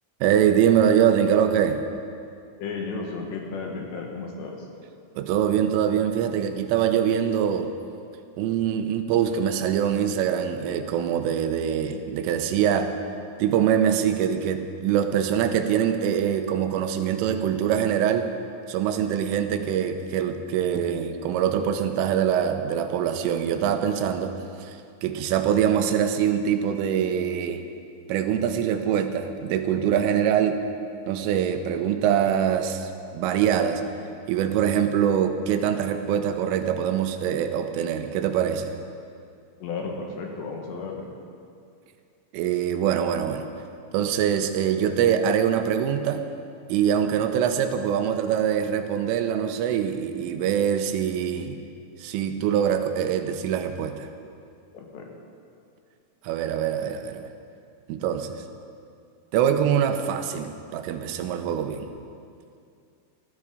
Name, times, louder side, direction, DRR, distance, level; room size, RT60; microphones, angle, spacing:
voice 1, 0.2-1.8 5.2-7.7 8.4-12.9 13.4-18.3 18.7-24.3 24.6-27.6 28.1-30.6 31.1-33.8 34.3-38.7 42.3-43.5 43.9-46.2 46.7-51.6 52.0-54.1 56.3-57.3 57.9-58.4 59.3-61.9, right 9 dB, 85° right, 7 dB, 3.4 m, -24 dB
voice 2, 2.6-4.7 39.6-41.1 54.7-55.1, left 4 dB, 70° left, 1 dB, 3.3 m, -33 dB
19.5 x 13.5 x 5.0 m, 2.4 s
omnidirectional pair, 5.7 m